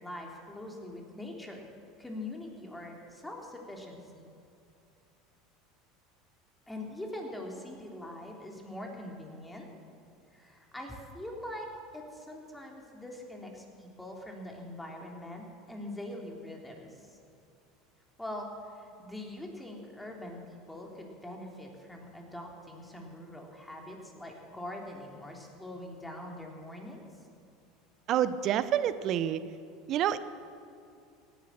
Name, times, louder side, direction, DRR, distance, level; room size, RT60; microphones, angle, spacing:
voice 1, 0.0-1.7 2.0-4.3 6.7-9.7 10.3-17.2 18.2-27.0, left 1 dB, 10° left, 0 dB, 3.2 m, -43 dB
voice 2, 28.1-29.4 29.9-30.2, right 10 dB, 50° right, 14 dB, 0.8 m, -28 dB
17.0 x 10.5 x 7.4 m, 2.6 s
hypercardioid pair, 85°, 0 cm